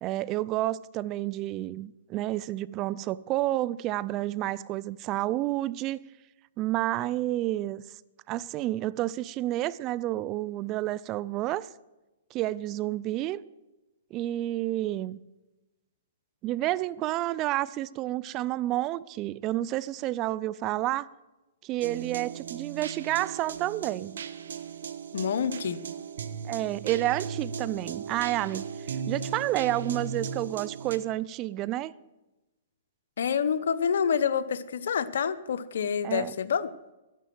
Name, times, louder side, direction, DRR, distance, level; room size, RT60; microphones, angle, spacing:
voice 1, 0.0-6.0 6.6-7.8 8.3-11.7 12.3-13.4 14.1-15.2 16.4-21.1 21.6-24.2 26.5-28.6 29.1-31.9 36.0-36.3, right 15 dB, 30° right, 0.4 m, -30 dB
sound 1, 21.8-31.0, right 6 dB, 75° right, 1.1 m, -37 dB
voice 2, 25.1-25.8 33.2-36.7, left 7 dB, 75° left, 0.9 m, -27 dB
11.5 x 11.0 x 7.8 m
hypercardioid pair, 140°, 0 cm